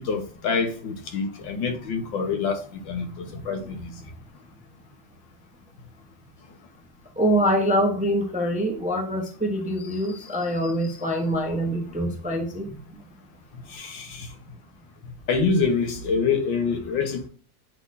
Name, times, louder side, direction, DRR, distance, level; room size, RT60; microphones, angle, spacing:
voice 1, 0.0-2.6 2.9-3.9 13.7-14.3 15.3-17.3, left 5 dB, 80° left, 2.0 m, -26 dB
voice 2, 7.2-13.0, equal, 5° right, 0.6 m, -25 dB
8.8 x 4.2 x 2.7 m
omnidirectional pair, 2.0 m